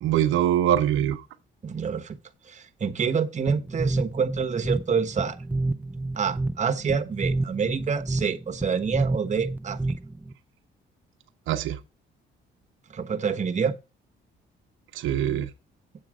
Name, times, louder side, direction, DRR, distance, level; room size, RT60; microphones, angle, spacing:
voice 1, 0.0-1.2 11.5-11.8 14.9-15.5, right 11 dB, 85° right, 0.9 m, -23 dB
voice 2, 1.6-2.2 2.5-5.4 6.2-9.8 12.9-13.8, right 6 dB, 35° right, 1.2 m, -27 dB
sound 1, 3.5-10.3, right 2 dB, 10° right, 0.6 m, -30 dB
8.5 x 7.6 x 5.0 m
cardioid pair, 90°, 20 cm